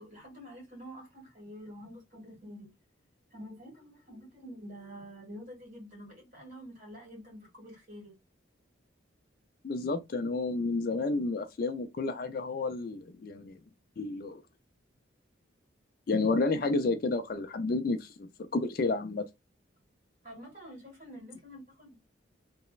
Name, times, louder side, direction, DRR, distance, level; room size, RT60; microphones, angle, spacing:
voice 1, 0.0-2.7 3.3-8.2 20.2-21.9, equal, 40° right, 1.6 m, -47 dB
voice 2, 9.6-13.6 14.0-14.4 16.1-19.2, left 3 dB, 50° left, 0.3 m, -31 dB
3.0 x 2.0 x 2.3 m
head